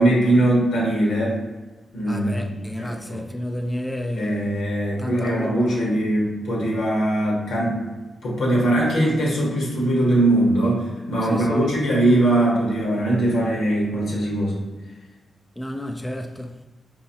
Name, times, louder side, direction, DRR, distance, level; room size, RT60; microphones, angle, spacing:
voice 1, 0.0-1.4 1.9-3.2 4.1-7.9 8.2-14.6, right 1 dB, 85° left, 1.2 m, -21 dB
voice 2, 2.1-4.5 5.0-5.8 11.2-11.7 15.6-16.6, equal, 10° left, 0.4 m, -30 dB
4.6 x 2.9 x 2.8 m
cardioid pair, 70°, 0 cm